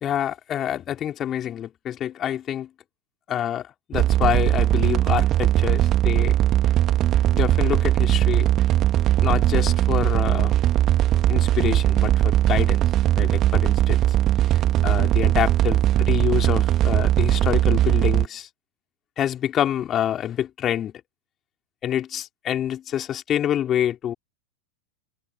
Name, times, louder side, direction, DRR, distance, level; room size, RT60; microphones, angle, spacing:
voice 1, 0.0-2.7 3.3-6.4 7.3-8.5 9.2-10.5 11.3-12.8 13.1-14.0 14.5-18.5 19.2-20.9 21.8-24.1, left 10 dB, 30° left, 3.4 m, -27 dB
sound 1, 3.9-18.3, right 13 dB, 30° right, 2.0 m, -19 dB
figure-of-eight pair, 90°, 0 cm